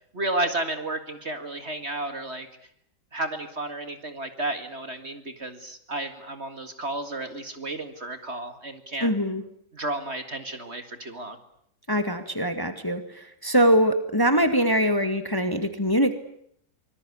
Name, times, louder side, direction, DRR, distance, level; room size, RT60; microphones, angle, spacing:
voice 1, 0.1-2.5 3.1-9.1 9.7-11.4, right 2 dB, 40° right, 8 dB, 2.1 m, -32 dB
voice 2, 9.0-9.4 11.9-13.0 13.4-16.1, equal, 10° left, 8 dB, 2.0 m, -22 dB
25.5 x 21.0 x 9.7 m, 0.68 s
omnidirectional pair, 1.9 m